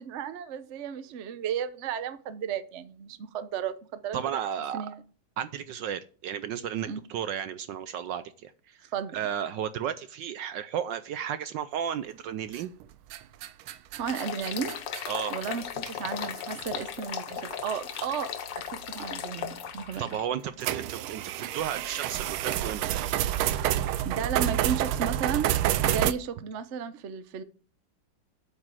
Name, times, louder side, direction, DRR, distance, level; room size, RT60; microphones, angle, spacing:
voice 1, 0.0-4.2 4.7-5.0 6.9-7.0 8.9-9.2 13.9-14.8 15.3-18.3 18.7-20.1 24.0-25.5 25.8-27.4, right 7 dB, 55° right, 0.8 m, -34 dB
voice 2, 4.1-4.9 5.4-12.7 15.0-15.3 20.0-22.8, right 9 dB, 70° right, 1.1 m, -33 dB
sound 1, 12.5-12.8 13.1-15.0 15.9-16.0 16.6-16.7 18.0-18.1 19.9-20.0 20.6-26.1, right 12 dB, 90° right, 1.5 m, -28 dB
sound 2, 14.1-20.2, left 8 dB, 65° left, 1.5 m, -36 dB
8.3 x 5.3 x 7.6 m
omnidirectional pair, 2.3 m